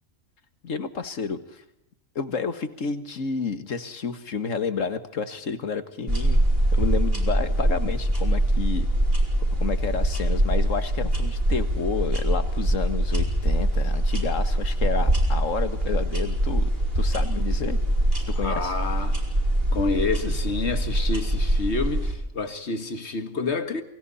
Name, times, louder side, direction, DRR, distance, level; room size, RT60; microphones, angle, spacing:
voice 1, 0.6-1.6 2.2-6.4 6.8-8.9 9.6-17.8 18.3-18.7, left 5 dB, 70° left, 2.0 m, -30 dB
sound 1, 6.1-22.1, right 1 dB, 45° right, 5.0 m, -23 dB
voice 2, 18.4-19.2 19.7-23.8, left 3 dB, 55° left, 2.1 m, -28 dB
28.0 x 23.5 x 4.2 m
omnidirectional pair, 1.4 m